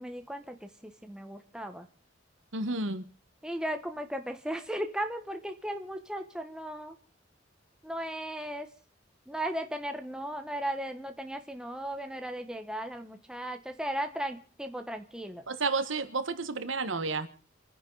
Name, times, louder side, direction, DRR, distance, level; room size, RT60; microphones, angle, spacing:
voice 1, 0.0-1.9 3.4-7.0 7.8-8.7 9.3-15.4, right 1 dB, 5° right, 1.1 m, -36 dB
voice 2, 2.5-3.0 15.5-17.3, right 3 dB, 85° right, 1.4 m, -31 dB
29.0 x 10.5 x 4.0 m
head